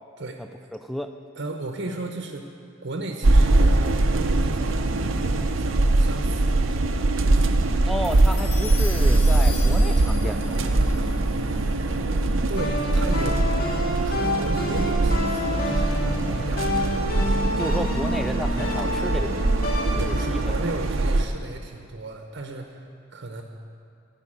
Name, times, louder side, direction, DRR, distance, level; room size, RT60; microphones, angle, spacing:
voice 1, 0.4-1.1 7.9-10.8 17.6-19.6 19.9-20.6, equal, ahead, 8 dB, 0.3 m, -32 dB
voice 2, 1.4-2.5 2.8-7.5 12.5-13.5 14.0-16.7 19.9-22.8 23.1-23.4, right 2 dB, 60° right, 3 dB, 0.9 m, -35 dB
sound 1, 3.2-21.2, right 2 dB, 90° right, 0.7 m, -22 dB
sound 2, 7.3-9.9 10.6-12.1 12.6-20.3, left 1 dB, 50° left, 1.5 m, -30 dB
sound 3, 8.0-12.6, left 6 dB, 70° left, 1.2 m, -40 dB
14.0 x 5.6 x 8.8 m, 2.5 s
head